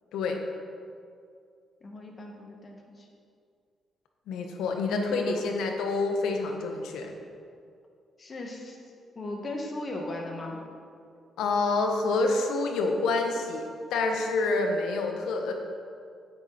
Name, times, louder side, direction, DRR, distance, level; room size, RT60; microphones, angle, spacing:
voice 1, 1.8-3.1 4.9-5.4 8.2-8.8 9.2-10.6, left 1 dB, 40° left, 1 dB, 1.9 m, -37 dB
voice 2, 4.3-7.1 11.4-15.5, left 3 dB, 80° left, 3 dB, 1.2 m, -27 dB
9.8 x 9.1 x 4.3 m, 2.3 s
supercardioid pair, 65°, 0 cm